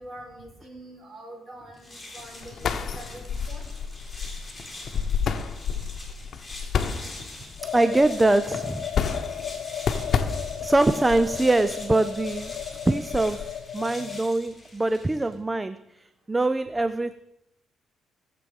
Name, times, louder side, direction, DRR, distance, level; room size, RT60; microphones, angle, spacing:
voice 1, 0.0-3.6, right 1 dB, 35° right, 5.7 m, -44 dB
sound 1, 1.7-15.4, left 2 dB, 15° left, 4.6 m, -44 dB
sound 2, 2.2-13.5, left 6 dB, 55° left, 1.1 m, -31 dB
sound 3, 7.6-14.2, left 10 dB, 75° left, 1.1 m, -35 dB
voice 2, 7.6-8.9 10.6-12.6 12.9-17.1, right 2 dB, 15° right, 0.5 m, -23 dB
18.0 x 7.6 x 5.3 m
cardioid pair, 90°, 0 cm